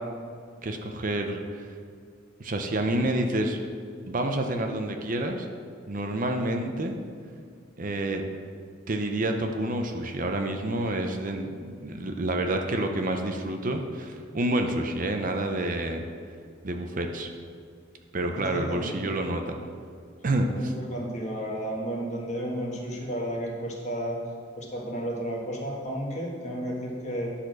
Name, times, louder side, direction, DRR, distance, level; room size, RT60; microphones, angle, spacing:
voice 1, 0.6-1.7 2.4-3.6 4.1-5.5 5.9-7.0 7.8-8.2 8.9-16.1 16.6-17.3 18.1-19.6 20.2-20.7, right 1 dB, 40° right, 4 dB, 0.6 m, -28 dB
voice 2, 18.3-19.1 20.5-24.2 24.6-27.3, equal, 35° left, -2 dB, 1.5 m, -32 dB
10.5 x 4.2 x 6.2 m, 2.2 s
head